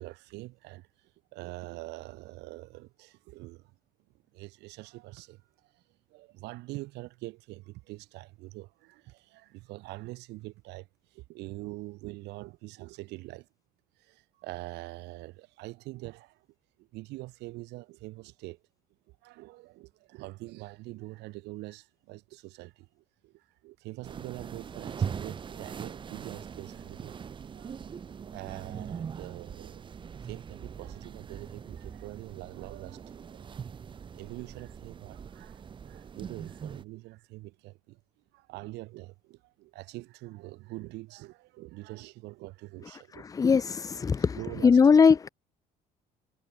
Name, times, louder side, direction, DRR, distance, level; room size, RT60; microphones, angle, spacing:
voice 1, 0.0-3.7 4.3-5.8 6.1-13.5 14.0-16.5 16.8-18.6 19.1-27.2 27.5-29.9 30.2-38.0 38.3-43.5 44.1-44.8, right 20 dB, 90° right, 2.6 m, -44 dB
sound 1, 24.0-36.8, right 7 dB, 30° right, 0.5 m, -41 dB
voice 2, 43.2-45.3, left 5 dB, 20° left, 0.4 m, -21 dB
cardioid pair, 110°, 17 cm